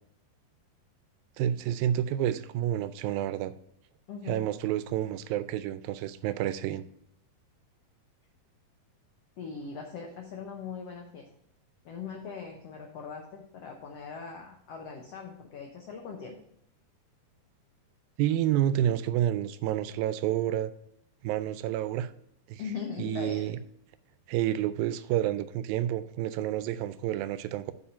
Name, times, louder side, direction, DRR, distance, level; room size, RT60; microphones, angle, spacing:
voice 1, 1.4-3.5 4.3-6.9 18.2-20.7 21.2-22.1 22.5-22.6 23.0-23.6 24.3-27.7, right 12 dB, 85° right, 14 dB, 2.3 m, -29 dB
voice 2, 4.1-4.5 9.4-11.3 11.8-16.3 22.6-23.5, left 6 dB, 85° left, 1 dB, 1.4 m, -40 dB
8.6 x 4.7 x 5.5 m, 0.72 s
omnidirectional pair, 4.2 m